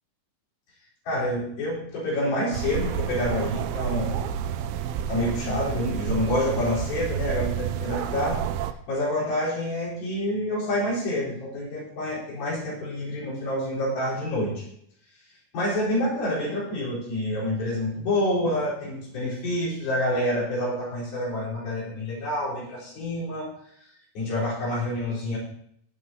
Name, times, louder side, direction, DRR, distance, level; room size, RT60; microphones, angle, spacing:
voice 1, 1.1-4.2 5.1-8.4 8.9-14.7 15.5-23.5 24.1-25.4, left 1 dB, 80° left, -7 dB, 6.1 m, -27 dB
sound 1, 2.5-8.7, right 9 dB, 85° right, 2.5 m, -30 dB
18.5 x 7.7 x 2.9 m, 0.70 s
omnidirectional pair, 4.2 m